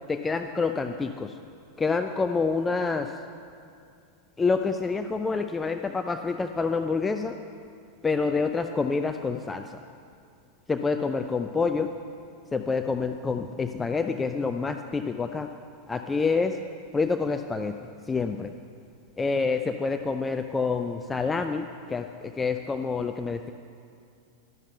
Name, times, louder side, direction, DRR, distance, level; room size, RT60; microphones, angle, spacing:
voice 1, 0.1-1.4 1.8-3.1 4.4-7.4 8.0-9.8 10.7-11.9 12.5-15.5 15.9-16.6 16.9-17.8 18.1-18.5 19.2-23.5, left 4 dB, 15° left, 6 dB, 0.5 m, -27 dB
12.0 x 11.5 x 6.7 m, 2.4 s
figure-of-eight pair, 90°, 0 cm